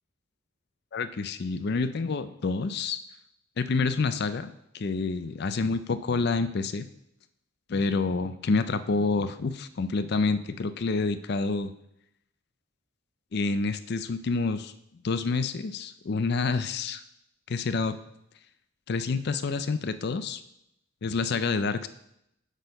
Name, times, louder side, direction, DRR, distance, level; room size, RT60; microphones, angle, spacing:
voice 1, 0.9-3.0 3.6-6.9 7.7-11.7 13.3-14.7 15.0-17.0 17.5-18.0 18.9-20.4 21.0-21.9, left 4 dB, 50° left, 12 dB, 0.4 m, -28 dB
8.0 x 4.4 x 5.3 m, 0.79 s
head